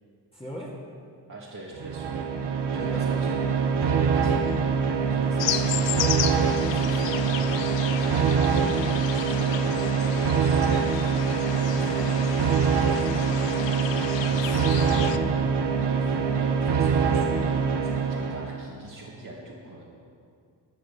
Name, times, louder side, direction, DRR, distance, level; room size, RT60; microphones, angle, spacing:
voice 1, 0.3-0.8 2.7-3.2 5.0-7.9 14.2-15.4, equal, 15° left, -6 dB, 2.0 m, -39 dB
voice 2, 1.3-2.3 2.7-3.3 3.8-4.6 8.0-10.9 11.4-13.2 15.8-19.9, right 2 dB, 45° right, -6 dB, 1.9 m, -41 dB
sound 1, 1.8-18.6, right 6 dB, 70° right, 0.9 m, -24 dB
sound 2, 5.4-15.2, left 10 dB, 90° left, 0.6 m, -33 dB
12.0 x 6.7 x 6.8 m, 2.3 s
cardioid pair, 70°, 43 cm